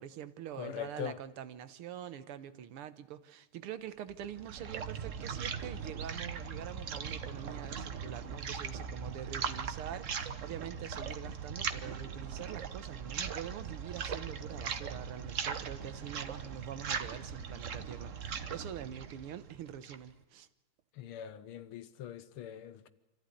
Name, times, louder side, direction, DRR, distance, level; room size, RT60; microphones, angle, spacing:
voice 1, 0.0-20.5, right 10 dB, 85° right, 1.9 m, -45 dB
voice 2, 0.6-1.2 21.0-22.9, left 9 dB, 80° left, 1.9 m, -42 dB
sound 1, 4.1-20.1, right 6 dB, 45° right, 1.1 m, -39 dB
26.0 x 14.5 x 9.8 m
omnidirectional pair, 2.4 m